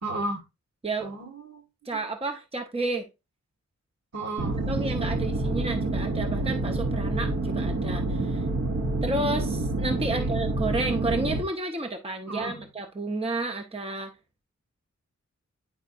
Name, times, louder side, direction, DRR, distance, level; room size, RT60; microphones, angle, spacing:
voice 1, 0.0-0.4 1.0-1.6 4.1-4.6 5.4-5.6 10.1-10.4 12.3-12.6, right 2 dB, 65° right, 2.0 m, -34 dB
voice 2, 1.8-3.1 4.7-8.5 9.0-14.1, right 2 dB, 20° right, 0.8 m, -31 dB
sound 1, 4.4-11.4, right 2 dB, 50° right, 1.0 m, -28 dB
9.9 x 4.1 x 2.4 m
wide cardioid pair, 100°, 29 cm